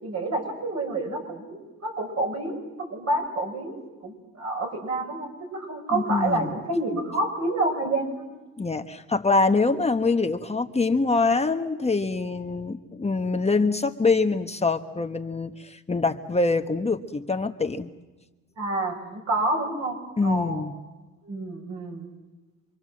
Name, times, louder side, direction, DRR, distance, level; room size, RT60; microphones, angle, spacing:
voice 1, 0.0-8.2 18.6-20.6 21.2-22.1, right 2 dB, 60° right, 1 dB, 7.2 m, -29 dB
voice 2, 5.9-6.6 8.6-17.9 20.2-20.7, left 3 dB, 20° left, 6 dB, 1.2 m, -24 dB
27.0 x 23.0 x 7.7 m, 1.2 s
cardioid pair, 90°, 30 cm